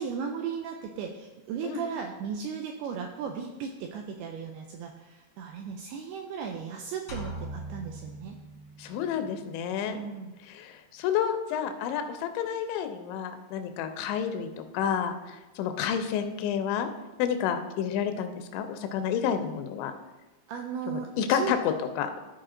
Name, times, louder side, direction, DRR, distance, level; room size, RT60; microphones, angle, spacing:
voice 1, 0.0-8.4 9.9-10.3 20.5-21.5, right 6 dB, 85° right, 3 dB, 2.3 m, -36 dB
sound 1, 7.1-8.9, right 2 dB, 60° left, 1.5 m, -40 dB
voice 2, 8.8-10.0 10.5-16.9 17.2-19.9 20.9-22.2, left 8 dB, 85° left, 8 dB, 3.1 m, -30 dB
13.5 x 4.9 x 3.8 m, 1.1 s
omnidirectional pair, 5.1 m